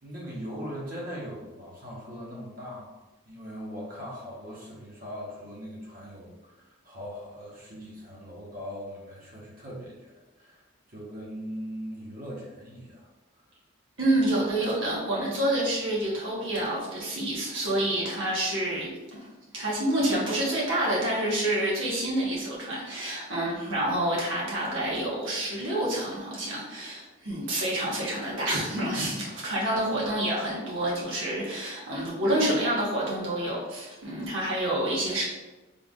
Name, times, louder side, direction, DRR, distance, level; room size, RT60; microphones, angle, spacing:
voice 1, 0.0-13.4, equal, 45° right, -5 dB, 1.1 m, -40 dB
voice 2, 14.0-19.3 19.5-35.2, right 1 dB, 70° right, -6 dB, 1.3 m, -28 dB
3.8 x 3.5 x 2.4 m, 1.1 s
head